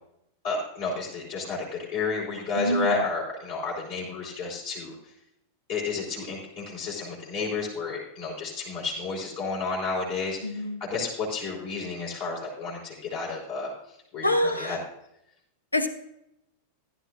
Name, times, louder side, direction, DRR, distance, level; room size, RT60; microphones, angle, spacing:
voice 1, 0.4-1.7 1.9-4.9 5.7-13.7 14.1-14.8, left 4 dB, 50° left, -6 dB, 4.1 m, -31 dB
voice 2, 2.6-3.1 10.4-10.8 14.2-14.8 15.7-15.9, left 1 dB, 85° left, 10 dB, 1.0 m, -26 dB
15.5 x 11.5 x 2.5 m, 0.81 s
figure-of-eight pair, 90°, 0 cm